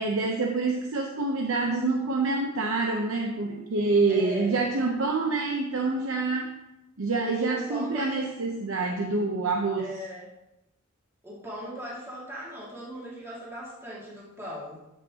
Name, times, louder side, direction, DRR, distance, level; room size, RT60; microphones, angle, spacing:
voice 1, 0.0-6.5 7.0-9.9, right 3 dB, 75° right, 1 dB, 0.8 m, -26 dB
voice 2, 4.1-4.6 7.2-8.3 9.8-10.3 11.2-14.8, right 1 dB, 10° right, -7 dB, 2.0 m, -38 dB
13.0 x 5.5 x 2.9 m, 0.92 s
head